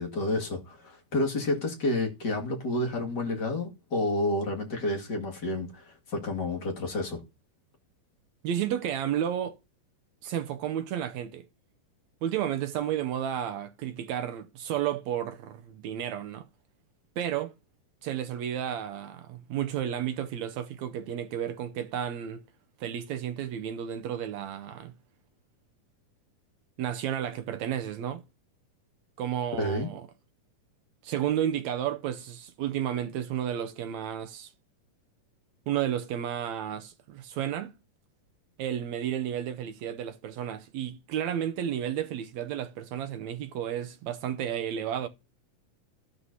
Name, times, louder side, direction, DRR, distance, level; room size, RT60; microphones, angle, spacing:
voice 1, 0.0-7.2 29.6-29.9, left 2 dB, 35° left, 2.3 m, -30 dB
voice 2, 8.4-9.6 10.2-11.5 12.2-16.5 17.2-17.5 18.0-22.4 22.8-24.9 26.8-28.2 29.2-30.1 31.0-34.5 35.7-37.8 38.6-45.1, right 10 dB, 75° right, 1.7 m, -32 dB
12.5 x 11.0 x 2.8 m
omnidirectional pair, 3.8 m